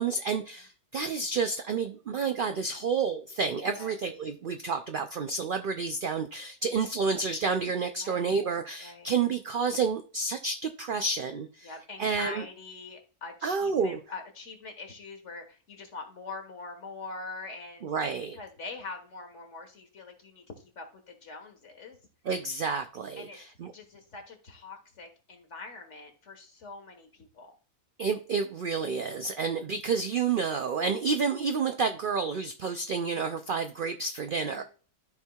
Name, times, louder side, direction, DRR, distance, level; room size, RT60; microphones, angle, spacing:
voice 1, 0.0-11.7 12.0-12.4 13.4-14.0 17.8-18.4 22.3-23.7 28.0-34.6, right 5 dB, 80° right, 7 dB, 0.4 m, -30 dB
voice 2, 8.8-9.1 11.6-17.9 18.3-22.0 23.2-27.5 34.5-34.6, left 3 dB, 55° left, 4 dB, 1.7 m, -44 dB
13.0 x 4.5 x 2.3 m, 0.39 s
omnidirectional pair, 1.5 m